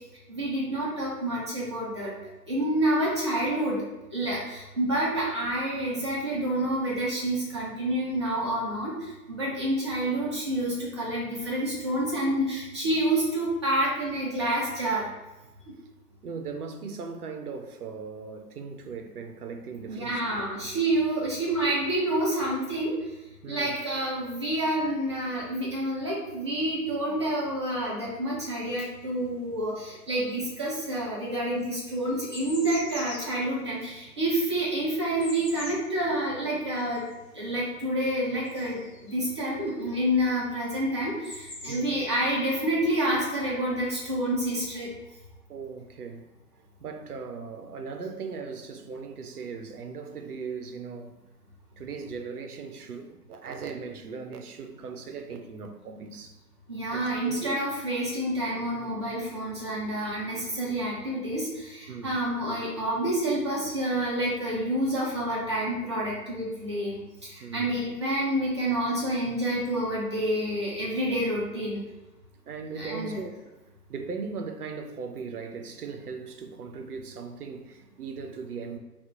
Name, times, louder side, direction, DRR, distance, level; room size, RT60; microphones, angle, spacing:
voice 1, 0.3-2.2 2.5-3.8 4.1-15.0 19.9-23.0 23.5-37.0 37.3-44.9 56.7-71.8 72.7-73.2, right 1 dB, 20° right, 0.5 m, -28 dB
voice 2, 16.2-20.5 23.4-23.7 41.7-41.9 45.5-46.3 46.8-51.1 51.8-56.3 56.9-57.6 61.9-62.2 67.4-67.8 72.5-73.4 73.9-78.8, right 5 dB, 70° right, 0.6 m, -38 dB
sound 1, 28.7-29.8 30.1-39.4 40.5-40.6 40.8-42.4, left 2 dB, 45° left, 1.0 m, -44 dB
2.8 x 2.4 x 3.5 m
figure-of-eight pair, 125°, 47 cm